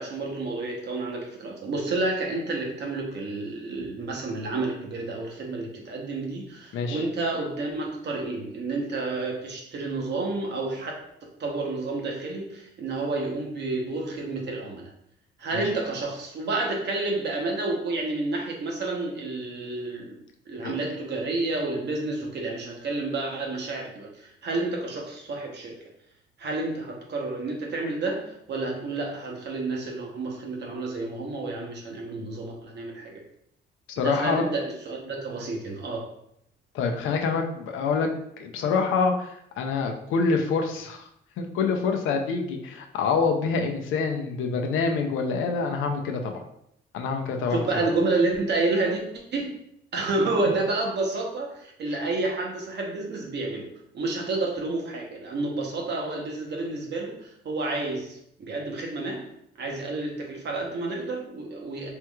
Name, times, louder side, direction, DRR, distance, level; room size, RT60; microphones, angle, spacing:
voice 1, 0.0-11.0 11.4-14.9 15.4-20.2 20.5-25.8 26.4-33.2 34.0-36.1 47.5-49.0 49.3-49.6 49.9-59.3 59.6-61.9, right 2 dB, 60° right, 0 dB, 0.8 m, -30 dB
voice 2, 6.7-7.0 15.5-15.6 20.5-20.7 33.9-34.4 36.7-41.1 41.4-46.4 46.9-47.9 51.9-52.0, left 4 dB, 85° left, 4 dB, 0.5 m, -26 dB
3.4 x 3.0 x 2.3 m, 0.74 s
cardioid pair, 90°, 20 cm